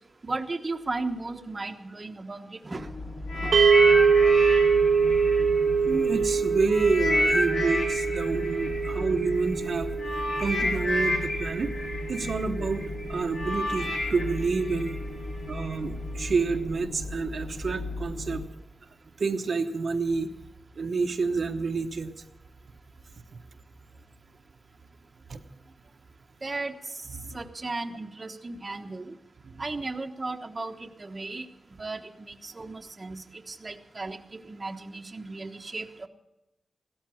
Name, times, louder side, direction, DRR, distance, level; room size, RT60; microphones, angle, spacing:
voice 1, 0.2-2.9 3.4-3.5 26.4-26.7 27.3-29.1 29.6-31.4 31.8-36.1, right 3 dB, 30° right, 5 dB, 1.2 m, -35 dB
sound 1, 2.8-18.4, left 2 dB, 50° left, 4.7 m, -37 dB
sound 2, 3.3-6.2 6.7-15.7 16.4-16.5, left 1 dB, 75° left, 7.2 m, -30 dB
sound 3, 3.5-13.8, right 6 dB, 80° right, 1.0 m, -25 dB
voice 2, 5.9-9.9 10.4-11.7 12.1-15.0 15.5-18.4 19.2-20.3 20.8-22.1 23.3-23.4 25.3-25.4 27.1-27.4 29.4-29.6, right 4 dB, 55° right, 5 dB, 1.1 m, -28 dB
16.5 x 13.5 x 6.3 m, 0.94 s
wide cardioid pair, 120°, 0 cm